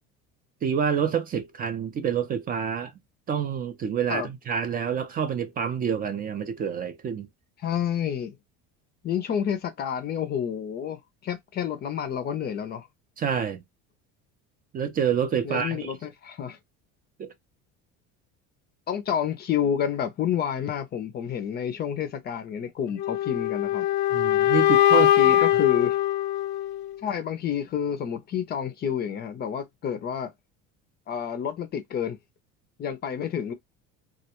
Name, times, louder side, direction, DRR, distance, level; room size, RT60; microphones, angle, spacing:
voice 1, 0.6-2.9 3.3-7.3 13.2-13.6 14.7-15.9 17.2-17.3 24.1-25.5, right 7 dB, 30° right, 0.4 m, -28 dB
voice 2, 7.6-8.3 9.0-12.9 15.4-16.6 18.9-23.9 24.9-26.0 27.0-30.3 31.1-32.2 32.8-33.5, left 8 dB, 35° left, 0.5 m, -29 dB
sound 1, 23.0-27.0, left 12 dB, 85° left, 0.5 m, -22 dB
2.3 x 2.1 x 2.9 m
cardioid pair, 140°, 29 cm